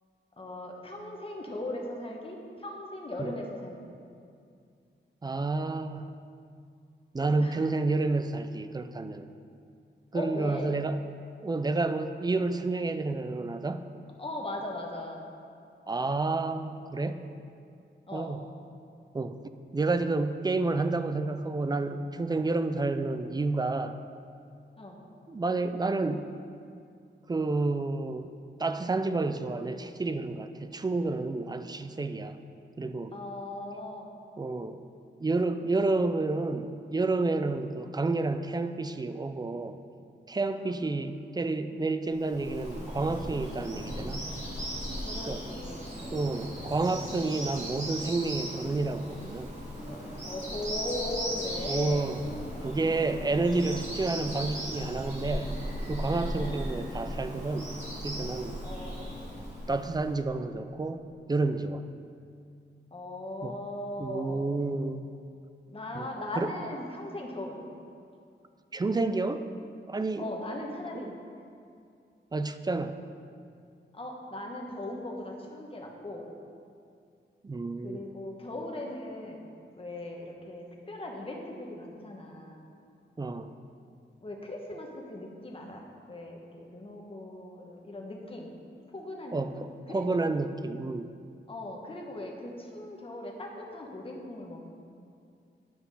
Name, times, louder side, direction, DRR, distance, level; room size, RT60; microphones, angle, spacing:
voice 1, 0.4-4.0 7.4-7.7 10.1-10.7 14.2-15.2 18.1-18.3 24.8-25.0 33.1-34.1 40.6-40.8 45.0-45.9 50.2-52.1 56.4-56.6 58.6-59.0 62.9-64.5 65.7-67.6 70.2-71.1 73.9-76.3 77.8-79.4 79.8-82.6 84.2-85.8 86.1-88.5 88.9-90.2 91.5-94.6, left 1 dB, 30° left, 0 dB, 1.2 m, -39 dB
voice 2, 5.2-6.1 7.1-9.3 10.1-11.0 11.4-13.9 15.9-17.3 18.1-18.5 19.1-19.4 19.7-24.0 25.3-26.3 27.3-28.3 28.6-32.4 32.8-33.1 34.4-34.8 35.2-39.8 40.3-44.3 45.2-45.4 46.1-49.5 51.6-52.2 52.6-55.6 55.9-57.8 58.0-58.6 59.7-61.8 63.4-63.5 64.0-65.1 65.9-66.1 66.4-66.5 68.7-69.5 69.9-70.4 70.9-71.1 72.3-73.0 77.4-78.1 83.2-83.5 89.3-91.1, right 3 dB, 20° right, 9 dB, 0.4 m, -30 dB
Bird vocalization bird call bird song, 42.2-60.2, equal, 35° right, 2.3 m, -37 dB
10.0 x 5.8 x 5.6 m, 2.4 s
wide cardioid pair, 145°, 19 cm